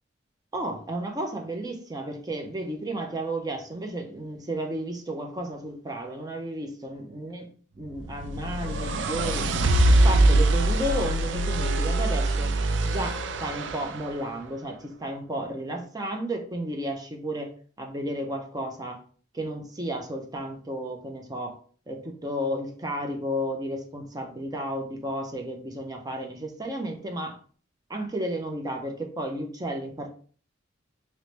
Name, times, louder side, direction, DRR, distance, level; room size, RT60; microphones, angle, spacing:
voice 1, 0.5-7.5 7.8-9.5 9.9-12.5 12.8-19.0 19.3-21.6 21.9-27.4 27.9-30.1, right 1 dB, 20° right, 3 dB, 0.5 m, -33 dB
sound 1, 8.0-14.1, right 1 dB, 75° right, 0.4 m, -23 dB
3.1 x 3.0 x 3.1 m, 0.42 s
head